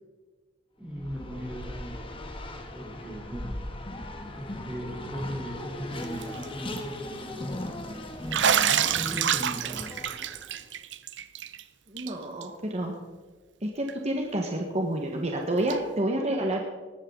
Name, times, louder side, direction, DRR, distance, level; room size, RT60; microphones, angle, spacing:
voice 1, 0.8-2.3 2.7-3.6 3.9-4.1 4.3-7.7 8.2-9.9, equal, 5° right, -8 dB, 4.5 m, -38 dB
Race car auto racing, 0.9-10.5, left 1 dB, 30° left, 1.6 m, -38 dB
Bathtub (filling or washing), 6.0-6.4 6.8-6.9 8.3-11.6 12.0-12.1 12.4-12.5 13.9-14.0 15.7-15.8, right 8 dB, 80° right, 0.7 m, -27 dB
voice 2, 11.9-13.0 13.6-16.6, right 1 dB, 35° right, 1 dB, 1.6 m, -29 dB
19.5 x 13.5 x 4.0 m, 1.4 s
head